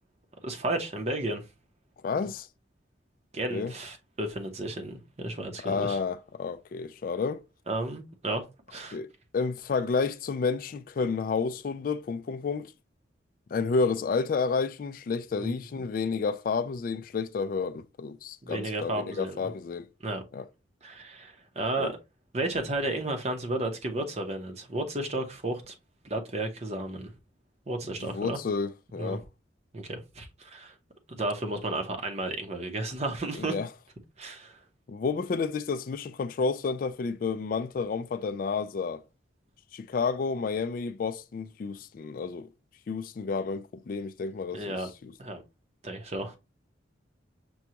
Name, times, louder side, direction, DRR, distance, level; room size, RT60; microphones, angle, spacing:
voice 1, 0.4-1.4 3.3-6.0 7.7-8.4 8.7-9.0 15.4-15.5 18.5-19.5 20.0-20.2 20.8-21.9 22.3-25.7 26.0-27.1 27.7-28.4 29.0-29.2 29.7-30.7 31.1-33.6 34.2-34.6 44.5-44.9 45.2-45.4 45.8-46.4, right 2 dB, 35° right, 0.8 m, -33 dB
voice 2, 2.0-2.5 3.5-3.7 5.6-7.4 8.9-9.1 9.3-12.7 13.5-19.9 20.3-20.4 21.8-21.9 28.0-29.2 33.3-33.7 34.9-39.0 39.7-42.5 42.9-45.1, left 4 dB, 50° left, 0.3 m, -30 dB
6.1 x 2.3 x 2.8 m
head